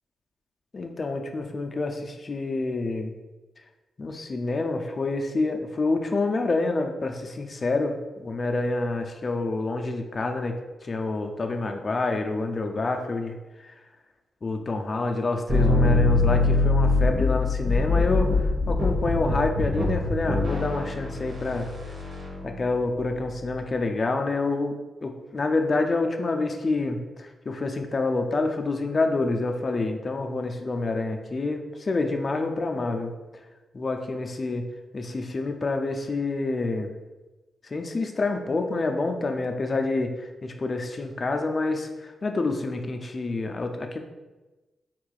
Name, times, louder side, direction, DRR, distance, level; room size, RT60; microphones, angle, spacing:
voice 1, 0.7-3.1 4.0-10.6 10.8-13.4 13.6-13.7 14.4-21.7 22.4-33.1 33.7-34.6 34.9-36.9 37.6-44.0, left 3 dB, 45° left, 4 dB, 0.5 m, -27 dB
sound 1, 15.5-23.4, left 3 dB, 55° right, 1.3 m, -24 dB
4.6 x 3.7 x 2.4 m, 1.1 s
supercardioid pair, 45°, 0 cm